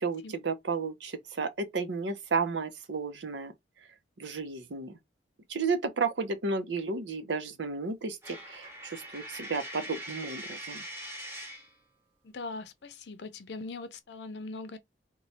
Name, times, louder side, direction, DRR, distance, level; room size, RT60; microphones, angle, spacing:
voice 1, 0.0-3.5 4.2-5.0 5.5-10.8, right 4 dB, 90° right, 0.7 m, -33 dB
Coin (dropping), 8.2-11.7, right 1 dB, 15° right, 1.0 m, -42 dB
voice 2, 12.2-14.8, left 3 dB, 70° left, 0.6 m, -41 dB
3.0 x 2.2 x 4.0 m
head